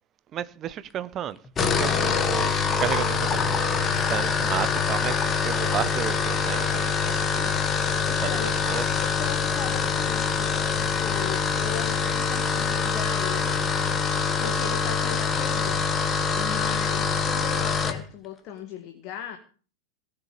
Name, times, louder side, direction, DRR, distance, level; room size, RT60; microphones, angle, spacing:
voice 1, 0.3-1.4 1.6-3.4 3.8-7.6 8.0-8.3 8.6-8.8, right 10 dB, 30° right, 1.0 m, -33 dB
sound 1, 1.4-18.0, left 5 dB, 20° left, 1.9 m, -25 dB
voice 2, 8.1-13.6 14.4-15.9 16.3-19.4, left 8 dB, 40° left, 1.8 m, -37 dB
18.0 x 6.9 x 8.7 m
figure-of-eight pair, 90°, 0 cm